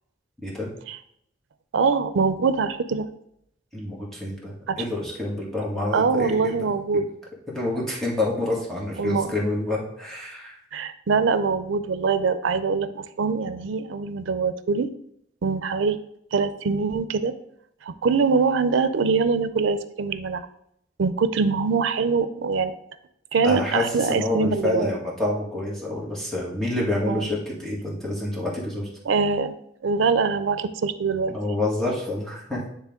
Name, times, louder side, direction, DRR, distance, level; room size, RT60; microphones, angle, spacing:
voice 1, 1.7-3.1 4.7-4.8 5.9-7.1 9.0-9.4 10.7-14.9 15.4-16.0 16.3-17.3 17.8-20.5 21.0-22.7 23.3-24.9 27.1-27.3 29.1-29.5 29.8-31.3, right 5 dB, 90° right, 12 dB, 0.5 m, -23 dB
voice 2, 3.7-6.5 7.5-10.6 23.4-28.9 31.3-32.7, left 1 dB, ahead, -5 dB, 1.7 m, -28 dB
9.8 x 3.3 x 3.6 m, 0.74 s
head